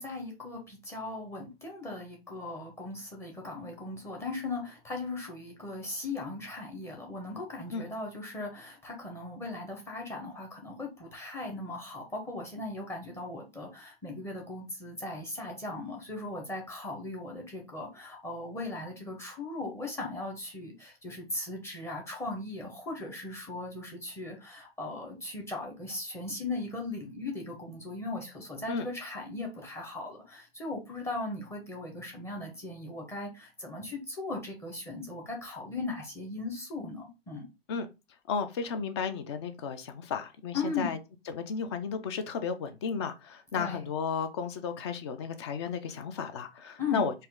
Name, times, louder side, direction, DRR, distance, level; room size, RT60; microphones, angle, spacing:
voice 1, 0.0-37.5 40.5-40.9 43.5-43.8 46.8-47.0, left 2 dB, 10° left, 1.1 m, -38 dB
voice 2, 38.3-41.0 41.3-47.1, left 6 dB, 25° left, 0.4 m, -33 dB
4.2 x 2.6 x 3.6 m
figure-of-eight pair, 110°, 31 cm